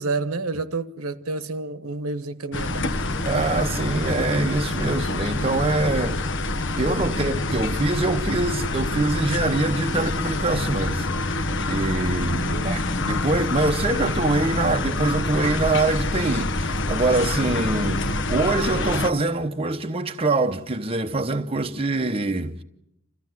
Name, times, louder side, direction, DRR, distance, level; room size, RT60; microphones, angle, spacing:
voice 1, 0.0-3.0 12.4-12.8, right 3 dB, 75° right, 1.2 m, -29 dB
sound 1, 2.5-19.1, left 2 dB, 55° left, 1.2 m, -26 dB
voice 2, 3.2-6.2 6.7-22.6, right 2 dB, 25° right, 0.9 m, -24 dB
28.5 x 14.5 x 9.5 m
head